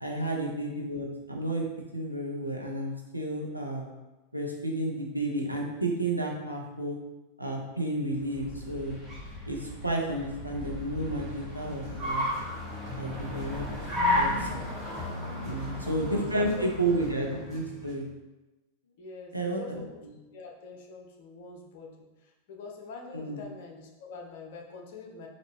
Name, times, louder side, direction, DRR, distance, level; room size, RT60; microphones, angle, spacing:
voice 1, 0.0-1.7 1.9-3.9 4.3-7.0 7.4-9.0 9.5-12.3 12.9-13.7 14.1-14.6 15.4-18.1 19.3-19.8 23.1-23.4, right 1 dB, 90° right, -1 dB, 0.6 m, -31 dB
Car, 8.0-17.6, left 1 dB, ahead, 1.3 m, -34 dB
sound 1, 11.5-18.0, left 2 dB, 25° right, 1.2 m, -41 dB
voice 2, 15.4-15.8 16.1-16.7 19.0-20.0 20.3-25.3, left 4 dB, 50° left, 2 dB, 0.6 m, -45 dB
4.0 x 2.6 x 3.1 m, 1.1 s
figure-of-eight pair, 90°, 0 cm